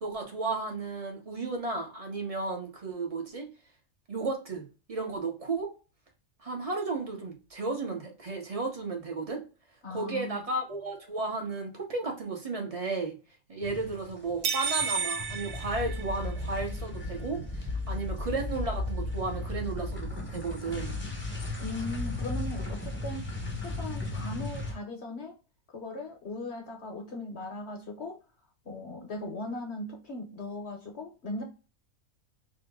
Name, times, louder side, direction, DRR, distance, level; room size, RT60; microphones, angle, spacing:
voice 1, 0.0-3.5 4.1-5.7 6.4-9.4 9.9-13.2 13.5-20.9, right 3 dB, 30° right, 0.8 m, -34 dB
voice 2, 9.8-10.4 21.6-25.4 25.7-28.2 28.6-31.4, left 2 dB, 55° left, 0.9 m, -38 dB
sound 1, 13.6-14.4 14.7-24.7, left 2 dB, 10° left, 0.8 m, -35 dB
sound 2, 14.4-16.6, right 7 dB, 65° right, 0.6 m, -32 dB
2.9 x 2.4 x 3.4 m
omnidirectional pair, 1.5 m